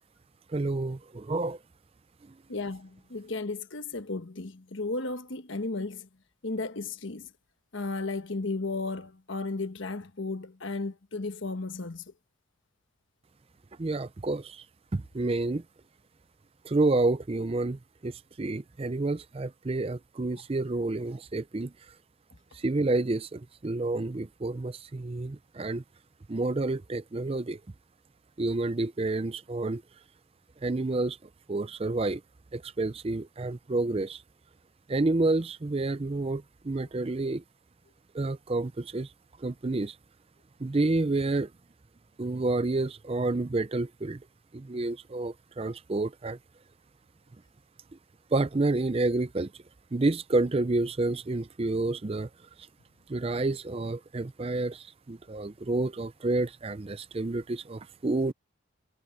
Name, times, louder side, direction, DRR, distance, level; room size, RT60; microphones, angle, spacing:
voice 1, 0.5-1.6 13.8-14.6 14.9-15.6 16.6-18.1 18.4-21.7 22.6-25.8 26.3-27.6 28.4-29.8 30.6-31.2 31.5-32.2 32.5-34.2 34.9-37.4 38.1-39.1 39.4-39.9 40.6-41.5 42.2-44.2 44.5-46.4 48.3-49.5 49.9-52.3 53.1-58.3, right 2 dB, 25° right, 0.5 m, -29 dB
voice 2, 2.5-6.1 6.4-7.3 7.7-12.0, left 3 dB, 60° left, 1.3 m, -34 dB
head